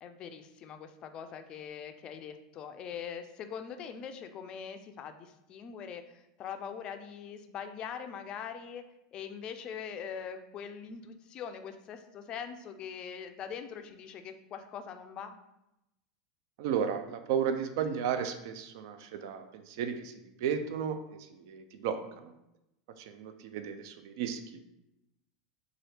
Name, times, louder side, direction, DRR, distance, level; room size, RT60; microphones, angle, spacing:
voice 1, 0.0-8.8 9.1-15.3, left 7 dB, 40° left, 8 dB, 0.3 m, -42 dB
voice 2, 16.6-20.1 20.4-21.0 21.3-22.3 23.0-24.6, right 7 dB, 70° right, 8 dB, 0.4 m, -34 dB
2.7 x 2.4 x 3.3 m, 0.88 s
supercardioid pair, 115°, 2 cm